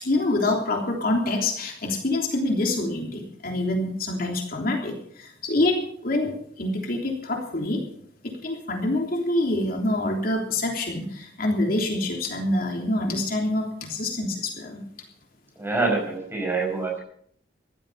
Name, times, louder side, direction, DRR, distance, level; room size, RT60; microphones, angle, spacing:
voice 1, 0.0-5.8 6.0-6.3 6.6-7.8 8.4-14.8, left 2 dB, 55° left, 1 dB, 3.3 m, -26 dB
voice 2, 15.6-17.0, right 3 dB, 15° right, 0 dB, 5.1 m, -26 dB
15.5 x 12.5 x 5.7 m, 0.66 s
head